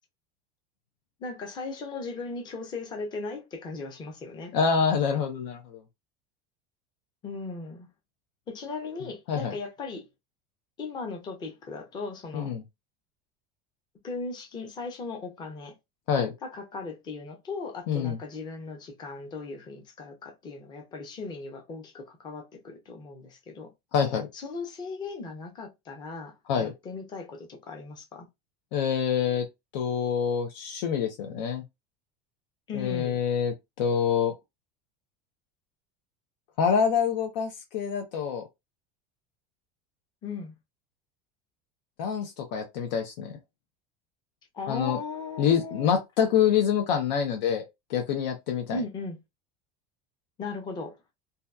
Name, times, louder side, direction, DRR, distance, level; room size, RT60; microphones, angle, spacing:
voice 1, 1.2-4.5 7.2-7.9 8.5-10.1 10.8-12.5 14.0-15.7 16.4-23.7 24.3-28.3 32.7-33.2 40.2-40.5 44.5-45.9 48.7-49.2 50.4-51.0, left 3 dB, 20° left, 0.5 m, -37 dB
voice 2, 4.5-5.8 9.3-9.5 12.3-12.6 16.1-16.3 17.9-18.2 23.9-24.3 26.5-26.7 28.7-29.4 29.7-31.6 32.7-34.3 36.6-38.4 42.0-43.4 44.7-45.0 45.4-47.6 47.9-48.8, left 7 dB, 85° left, 0.7 m, -26 dB
2.7 x 2.3 x 2.2 m
cardioid pair, 170°, 21 cm